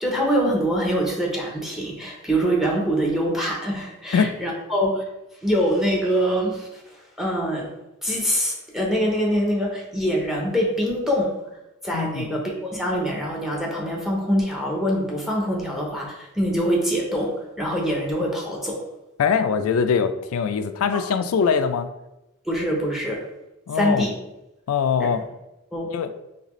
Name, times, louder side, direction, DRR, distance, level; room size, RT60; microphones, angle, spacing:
voice 1, 0.0-5.0 5.4-7.7 8.0-11.4 11.8-18.8 22.5-23.2 23.7-24.1 25.7-25.9, equal, ahead, -1 dB, 0.7 m, -24 dB
voice 2, 11.9-12.3 19.2-21.9 23.7-24.1 24.7-25.2 25.9-26.1, left 6 dB, 85° left, 9 dB, 0.3 m, -22 dB
4.0 x 3.3 x 3.0 m, 0.93 s
head